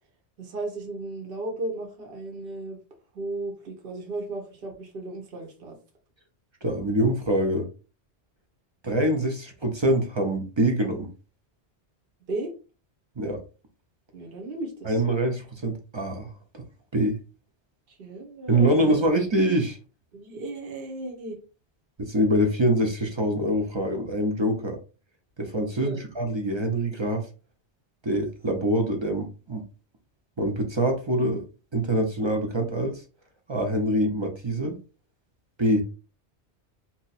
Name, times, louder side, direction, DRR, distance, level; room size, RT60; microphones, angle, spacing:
voice 1, 0.4-2.8 3.1-5.8 12.3-12.5 14.1-15.0 17.9-19.0 20.1-21.4 25.8-26.0, right 2 dB, 60° right, 1 dB, 1.0 m, -35 dB
voice 2, 6.6-7.7 8.8-11.1 13.2-13.4 14.8-16.6 16.9-17.2 18.5-19.8 22.0-24.8 25.4-27.2 28.0-29.6 30.4-31.4 31.7-33.0 33.5-34.7 35.6-35.8, right 1 dB, 35° right, 3 dB, 0.5 m, -24 dB
2.7 x 2.3 x 4.0 m, 0.34 s
omnidirectional pair, 1.1 m